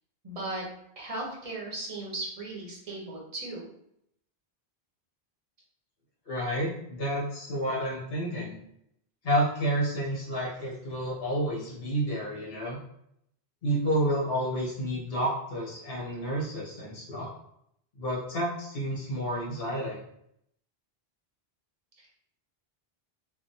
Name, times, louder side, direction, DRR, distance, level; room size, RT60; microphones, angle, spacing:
voice 1, 0.2-0.6 1.0-3.7 22.0-22.1, right 2 dB, 40° right, -2 dB, 0.8 m, -37 dB
voice 2, 6.3-8.6 9.2-12.8 13.6-17.3 18.0-20.0, right 1 dB, 70° left, -5 dB, 1.4 m, -30 dB
3.5 x 2.2 x 2.6 m, 0.74 s
omnidirectional pair, 1.1 m